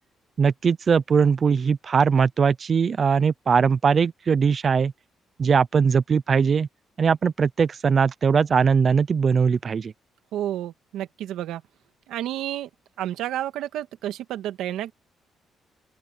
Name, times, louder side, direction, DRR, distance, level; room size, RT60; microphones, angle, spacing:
voice 1, 0.4-4.9 5.4-6.7 7.0-9.9, right 6 dB, 45° right, 0.6 m, -20 dB
voice 2, 10.3-11.6 12.1-12.7 13.0-14.9, right 12 dB, 85° right, 1.8 m, -30 dB
open air
cardioid pair, 90°, 0 cm